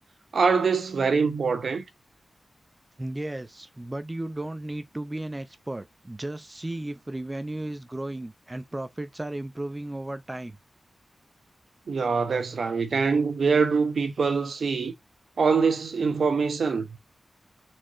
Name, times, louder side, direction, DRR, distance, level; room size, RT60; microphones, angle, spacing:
voice 1, 0.3-1.8 11.9-14.9 15.4-16.9, right 5 dB, 75° right, 0.9 m, -24 dB
voice 2, 3.0-10.6, right 1 dB, 20° right, 0.5 m, -34 dB
4.3 x 3.6 x 3.1 m
wide cardioid pair, 120°, 0 cm